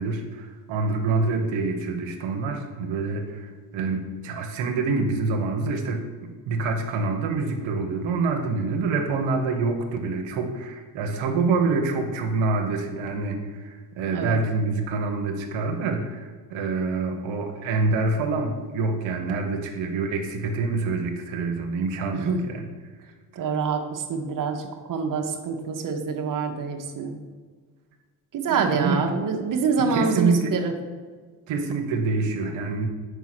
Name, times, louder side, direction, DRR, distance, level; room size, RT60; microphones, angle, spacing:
voice 1, 0.0-22.7 28.5-29.0 29.8-30.5 31.5-32.9, right 3 dB, 70° right, 4 dB, 1.0 m, -26 dB
voice 2, 22.1-22.5 23.4-27.2 28.3-30.7, right 5 dB, 40° right, 4 dB, 0.9 m, -26 dB
4.9 x 4.6 x 5.9 m, 1.5 s
supercardioid pair, 65°, 48 cm